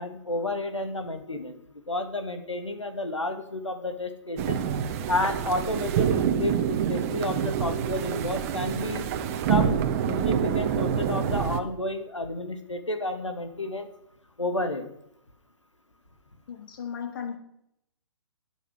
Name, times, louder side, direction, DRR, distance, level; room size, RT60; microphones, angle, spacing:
voice 1, 0.0-4.6 5.1-9.1 9.5-13.9 14.4-14.9, left 2 dB, 80° left, 8 dB, 2.4 m, -31 dB
sound 1, 4.4-11.6, right 8 dB, 30° right, 1.2 m, -27 dB
sound 2, 5.7-10.7, right 9 dB, 45° right, 0.6 m, -36 dB
voice 2, 16.5-17.4, left 7 dB, 45° left, 6 dB, 2.8 m, -35 dB
12.0 x 9.7 x 7.6 m, 0.77 s
figure-of-eight pair, 125°, 15 cm